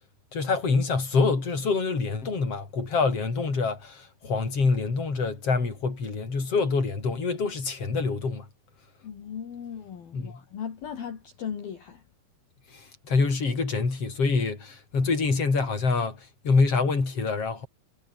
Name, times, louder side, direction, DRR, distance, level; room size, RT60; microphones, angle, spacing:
voice 1, 0.3-8.5 10.1-10.3 12.7-17.7, left 4 dB, 30° left, 6.3 m, -26 dB
voice 2, 9.0-12.0, left 8 dB, 50° left, 4.7 m, -37 dB
omnidirectional pair, 5.8 m